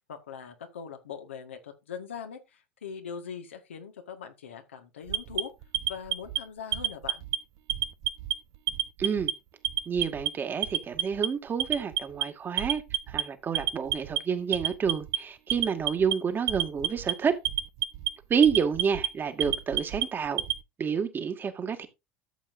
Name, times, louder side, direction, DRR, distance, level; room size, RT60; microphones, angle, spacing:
voice 1, 0.1-5.5 5.9-7.2, left 7 dB, 80° left, 1.7 m, -41 dB
Alarm, 5.1-6.4 6.7-7.4 7.7-8.3 8.7-9.3 9.6-10.3 10.6-11.3 11.6-12.2 12.6-13.2 13.6-14.2 14.5-15.2 15.5-16.1 16.5-17.1 17.5-18.1 18.4-19.1 19.4-20.6, right 13 dB, 55° right, 1.0 m, -28 dB
voice 2, 9.0-9.3 9.9-17.4 18.3-20.4 20.8-21.9, right 6 dB, 35° right, 2.0 m, -29 dB
13.5 x 7.4 x 2.7 m
hypercardioid pair, 75°, 6 cm